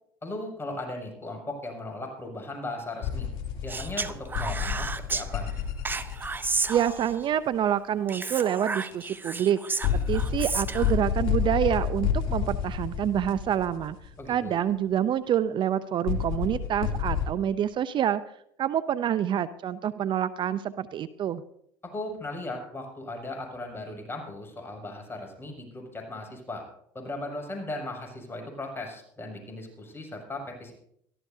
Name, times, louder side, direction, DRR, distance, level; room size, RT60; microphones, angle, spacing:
voice 1, 0.2-3.3 3.6-5.5 14.2-14.6 21.8-26.6 26.9-30.7, left 2 dB, 20° left, 2 dB, 6.7 m, -37 dB
sound 1, 3.0-7.1 8.9-9.0 9.7-14.3 16.1-17.3, left 8 dB, 60° left, 2.7 m, -30 dB
Speech, 3.7-5.2 5.8-7.3 8.1-11.0, right 4 dB, 20° right, 0.8 m, -32 dB
voice 2, 6.7-9.6 10.1-14.0 14.3-18.2 18.6-21.4, right 10 dB, 45° right, 14 dB, 0.6 m, -27 dB
23.0 x 14.5 x 2.8 m, 0.71 s
supercardioid pair, 80°, 11 cm